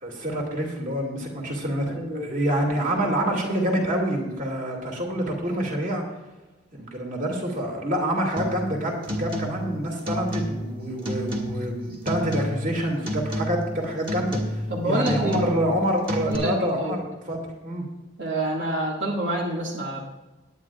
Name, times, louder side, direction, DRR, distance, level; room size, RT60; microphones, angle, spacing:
voice 1, 0.0-6.0 6.7-17.0 17.2-17.9, right 1 dB, 45° right, 0 dB, 2.5 m, -27 dB
voice 2, 1.9-2.4 14.7-15.5 16.2-17.0 18.2-20.0, right 1 dB, 85° right, -3 dB, 2.2 m, -27 dB
sound 1, 8.4-8.7 9.0-9.7 10.0-10.7 11.1-11.7 12.1-12.8 13.1-13.7 14.1-14.7 15.0-15.7 16.1-16.4, equal, 30° right, 1.8 m, -30 dB
19.0 x 10.0 x 2.5 m, 1.1 s
head